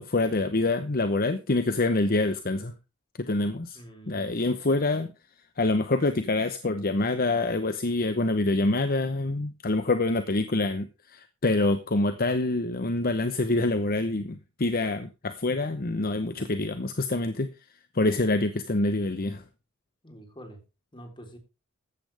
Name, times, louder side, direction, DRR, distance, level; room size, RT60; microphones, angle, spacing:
voice 1, 0.0-2.7 3.3-3.8 4.1-5.1 5.6-17.5 17.9-19.4, left 2 dB, 45° left, 0.9 m, -26 dB
voice 2, 3.7-4.3 20.0-20.6 20.9-21.4, right 1 dB, 25° left, 3.6 m, -46 dB
14.5 x 10.5 x 3.4 m
head